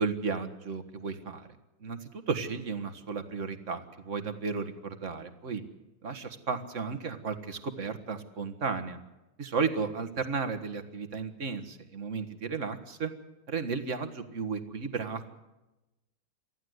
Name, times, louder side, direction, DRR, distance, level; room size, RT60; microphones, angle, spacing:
voice 1, 0.0-1.5 1.8-5.6 6.0-9.0 9.4-13.1 13.5-15.3, right 5 dB, 40° right, 9 dB, 1.8 m, -34 dB
24.0 x 15.0 x 8.1 m, 1.0 s
omnidirectional pair, 2.2 m